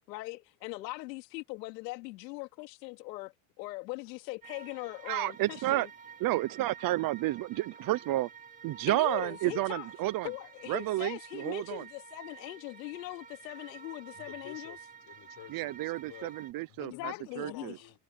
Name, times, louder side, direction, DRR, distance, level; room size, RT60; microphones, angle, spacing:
voice 1, 0.1-5.9 8.9-9.9 10.2-14.8 16.8-17.7, left 21 dB, 90° left, 2.9 m, -41 dB
voice 2, 4.0-4.3 14.1-16.3 16.7-18.0, left 15 dB, 50° left, 6.8 m, -50 dB
sound 1, 4.4-16.5, right 7 dB, 15° right, 5.4 m, -50 dB
voice 3, 5.1-5.9 6.2-8.3 8.6-10.3 10.7-11.8 15.5-17.8, right 17 dB, 45° right, 0.9 m, -31 dB
supercardioid pair, 135°, 49 cm